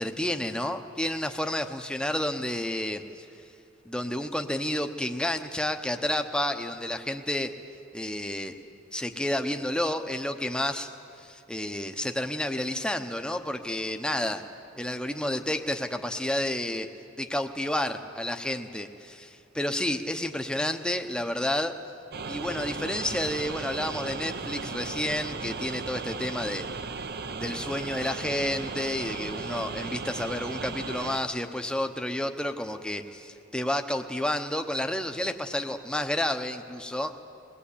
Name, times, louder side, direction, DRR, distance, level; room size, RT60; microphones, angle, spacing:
voice 1, 0.0-3.3 3.8-7.5 7.9-8.5 8.9-10.9 11.2-14.4 14.8-16.9 17.2-21.7 22.3-26.6 27.4-37.2, left 1 dB, 5° left, 6 dB, 0.8 m, -30 dB
sound 1, 22.1-31.2, right 4 dB, 50° right, 0.7 m, -36 dB
21.5 x 19.0 x 8.5 m, 2.6 s
head